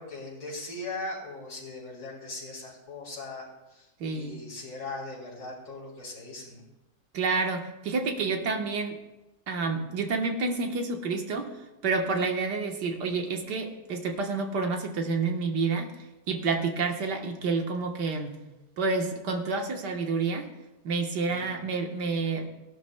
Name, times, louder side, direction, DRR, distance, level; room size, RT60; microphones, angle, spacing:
voice 1, 0.0-3.4 3.7-6.6 21.3-21.6, left 2 dB, 70° left, -4 dB, 4.6 m, -39 dB
voice 2, 4.0-4.4 7.1-9.0 9.5-11.5 11.8-15.9 16.3-18.4 18.8-20.5 20.8-22.5, right 4 dB, 85° right, 4 dB, 1.8 m, -29 dB
18.5 x 11.5 x 2.2 m, 1.0 s
omnidirectional pair, 1.8 m